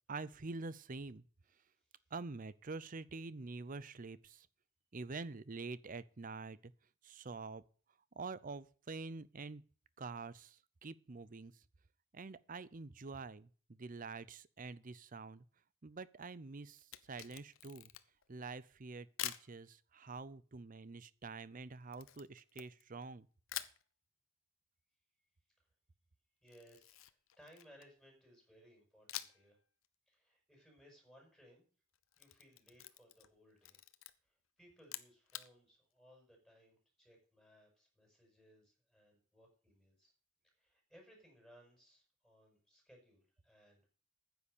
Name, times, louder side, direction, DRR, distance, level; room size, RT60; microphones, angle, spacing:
voice 1, 0.1-1.2 2.1-4.5 4.9-6.7 7.0-7.6 8.2-9.6 10.0-11.5 12.1-13.5 13.8-15.4 15.8-17.9 18.3-23.3, right 3 dB, 40° right, 0.6 m, -46 dB
Camera, 16.8-18.3 19.2-19.5 21.9-23.1 23.5-23.8 26.5-28.0 29.1-29.5 29.8-29.9 31.9-33.3 33.6-34.1 34.8-35.5, left 13 dB, 85° left, 0.8 m, -46 dB
voice 2, 26.4-29.6 30.1-31.7 32.2-33.8 34.2-40.1 40.6-43.9, equal, ahead, 6.6 m, -64 dB
9.8 x 7.9 x 6.7 m
head